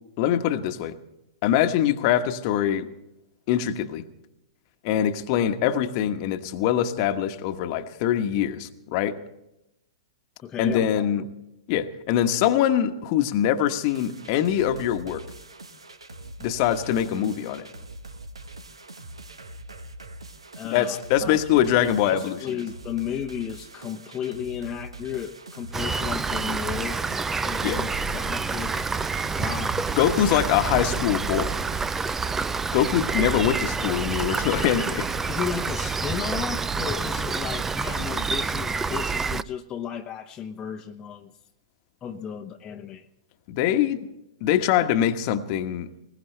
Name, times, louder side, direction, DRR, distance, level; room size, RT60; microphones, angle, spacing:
voice 1, 0.2-1.0 1.4-2.9 3.5-4.0 4.8-9.2 10.6-11.2 11.7-15.2 16.4-17.7 20.7-22.4 27.6-27.8 30.0-31.6 32.7-35.1 43.5-44.1 44.4-45.9, left 10 dB, 40° left, 8 dB, 1.2 m, -23 dB
voice 2, 10.4-11.3 20.6-21.4 21.8-27.1 27.4-28.8 29.4-29.8 35.3-41.3 42.0-43.1, left 8 dB, 20° left, 1 dB, 0.9 m, -34 dB
sound 1, 13.8-31.9, right 2 dB, 80° right, 1.2 m, -43 dB
Rain, 25.7-39.4, right 4 dB, 10° right, 0.5 m, -28 dB
21.5 x 19.0 x 3.3 m, 0.88 s
figure-of-eight pair, 110°, 3 cm